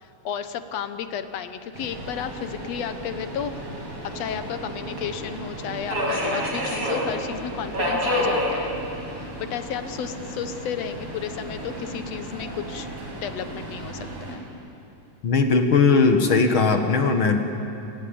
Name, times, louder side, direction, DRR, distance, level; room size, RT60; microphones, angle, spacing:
voice 1, 0.0-3.5 4.0-8.8 9.1-14.5, left 8 dB, 65° left, 10 dB, 1.9 m, -33 dB
Subway metro underground, 1.7-14.3, equal, 45° right, 6.2 m, -31 dB
voice 2, 15.2-17.4, left 4 dB, 50° left, 5 dB, 1.9 m, -19 dB
29.0 x 19.5 x 8.6 m, 2.8 s
omnidirectional pair, 3.6 m